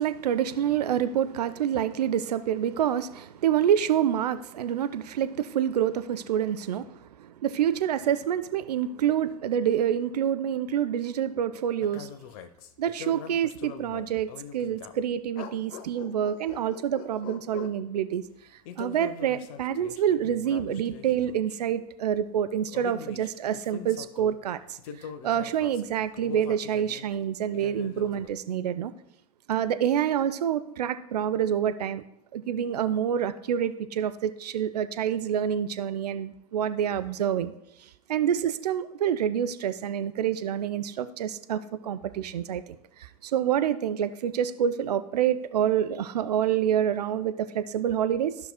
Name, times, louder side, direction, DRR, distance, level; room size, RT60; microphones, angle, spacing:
voice 1, 0.0-12.1 12.8-18.2 18.8-28.9 29.5-32.0 32.3-37.5 37.8-42.6 43.0-48.4, right 9 dB, 80° right, 12 dB, 0.4 m, -27 dB
sound 1, 11.8-15.0 15.3-17.8 18.6-21.6 22.5-24.4 24.8-27.1 27.5-28.3, left 7 dB, 55° left, 0.7 m, -43 dB
13.0 x 5.8 x 2.2 m, 0.78 s
hypercardioid pair, 90°, 20 cm